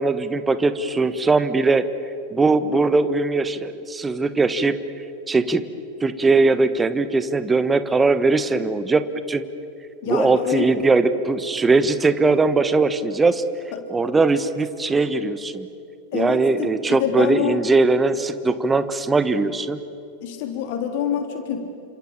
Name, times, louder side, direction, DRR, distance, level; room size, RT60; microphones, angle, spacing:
voice 1, 0.0-1.8 2.3-4.8 5.3-5.6 6.0-9.4 10.1-13.4 13.9-15.7 16.1-19.8, right 3 dB, 15° right, 12 dB, 1.3 m, -20 dB
voice 2, 10.0-10.6 16.1-17.6 20.2-21.7, left 8 dB, 50° left, 5 dB, 3.6 m, -26 dB
29.5 x 26.5 x 7.4 m, 2.8 s
figure-of-eight pair, 90°, 0 cm